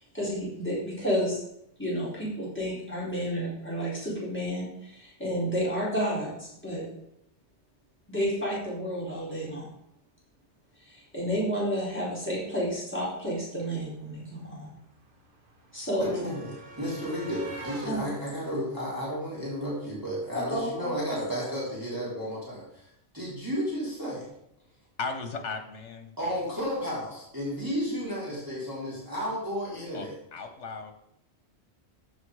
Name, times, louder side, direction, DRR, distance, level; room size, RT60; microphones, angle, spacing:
voice 1, 0.1-1.4 1.8-6.8 8.1-9.7 10.9-14.7 15.7-16.1 17.8-18.0 20.3-20.9, equal, 10° left, -7 dB, 4.7 m, -31 dB
sound 1, 13.4-13.5 13.7-19.9 21.1-21.2 21.5-21.6, right 2 dB, 50° right, 1.6 m, -46 dB
voice 2, 16.0-24.3 26.2-30.1, equal, 15° right, -7 dB, 3.5 m, -33 dB
voice 3, 25.0-26.4 29.9-30.9, left 4 dB, 80° left, 7 dB, 1.6 m, -37 dB
14.5 x 5.3 x 4.9 m, 0.79 s
omnidirectional pair, 1.2 m